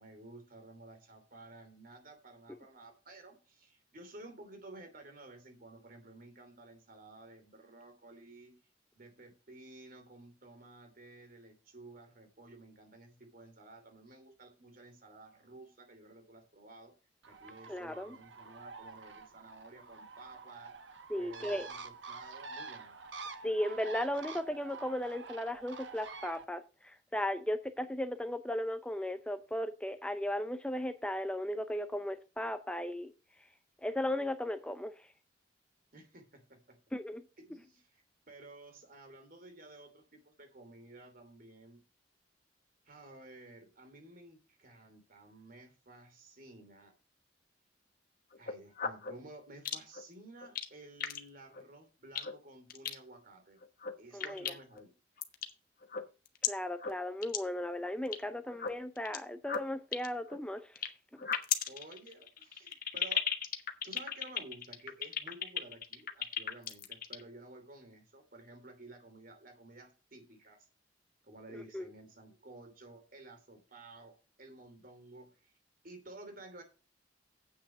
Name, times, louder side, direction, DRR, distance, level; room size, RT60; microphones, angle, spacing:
voice 1, 0.0-8.6 8.9-16.9 17.3-20.7 21.1-23.0 35.9-36.8 37.5-37.9 38.3-41.8 42.8-46.9 48.4-53.6 54.0-55.0 61.7-63.2 63.8-70.7 71.2-75.5 75.8-76.6, right 2 dB, 50° right, 2.8 m, -53 dB
Bird, 17.2-26.4, right 4 dB, 75° right, 1.0 m, -47 dB
voice 2, 17.7-18.2 21.1-21.7 23.4-33.1 33.8-34.9 36.9-37.3 54.1-54.5 56.5-60.9 71.7-71.9, left 1 dB, 5° left, 0.5 m, -36 dB
sound 1, 48.3-49.1 49.7-50.0 50.4-50.7 51.0-51.2 51.5-51.6 52.2-52.3 52.7-53.0 53.6-53.9 54.2-54.8 55.2-55.5 55.8-56.5 56.8-56.9 57.2-57.4 57.6-58.2 58.5-59.2 59.5-60.9 61.2-67.2, left 8 dB, 50° left, 1.1 m, -35 dB
8.3 x 6.3 x 6.2 m
head